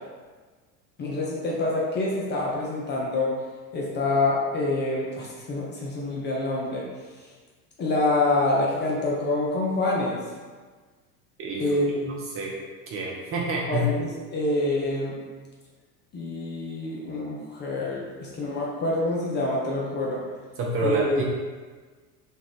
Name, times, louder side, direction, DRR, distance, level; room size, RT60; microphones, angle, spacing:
voice 1, 1.0-3.3 3.7-6.8 7.8-10.2 11.6-12.2 13.7-15.2 16.1-20.2 20.8-21.2, left 2 dB, 25° left, -4 dB, 0.5 m, -26 dB
voice 2, 12.9-13.9 20.6-21.2, right 1 dB, 30° right, -2 dB, 0.5 m, -27 dB
3.0 x 2.4 x 3.5 m, 1.4 s
hypercardioid pair, 80°, 48 cm